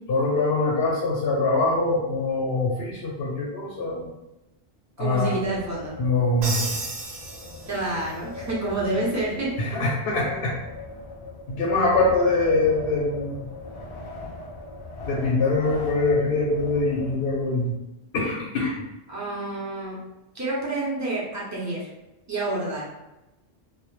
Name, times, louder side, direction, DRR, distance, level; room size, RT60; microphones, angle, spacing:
voice 1, 0.1-4.1 5.0-5.4 6.0-6.8 9.6-10.6 11.5-13.5 15.0-17.8 18.1-18.7, left 2 dB, 75° left, -4 dB, 0.8 m, -23 dB
Wind, 5.0-17.7, left 2 dB, 50° left, 0.5 m, -40 dB
voice 2, 5.0-5.9 7.7-9.9 19.1-20.0 20.3-21.8 22.3-22.9, right 2 dB, 20° right, -5 dB, 0.5 m, -28 dB
Crash cymbal, 6.4-8.1, right 3 dB, 65° right, 0.7 m, -33 dB
2.1 x 2.1 x 3.0 m, 0.98 s
omnidirectional pair, 1.1 m